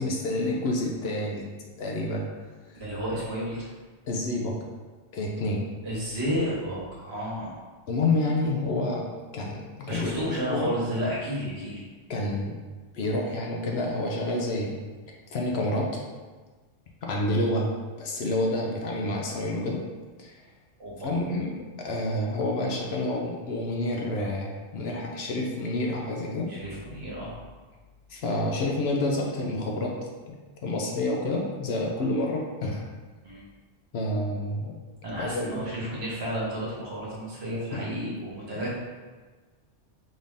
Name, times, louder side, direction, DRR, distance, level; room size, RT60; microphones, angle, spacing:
voice 1, 0.0-1.4 1.8-2.3 4.1-4.6 5.1-5.6 7.9-9.1 9.3-10.8 12.1-12.6 12.9-14.8 15.3-16.0 17.0-17.7 18.0-19.8 20.2-20.3 21.0-26.5 28.1-30.3 30.6-32.9 33.9-34.8 35.2-35.6 37.7-37.8, left 2 dB, 65° left, -1 dB, 0.8 m, -28 dB
voice 2, 2.7-3.7 5.8-7.6 9.9-11.8 20.8-21.2 26.5-27.4 33.2-33.4 35.0-38.8, equal, 60° right, -6 dB, 1.3 m, -32 dB
3.9 x 2.6 x 3.5 m, 1.4 s
omnidirectional pair, 1.2 m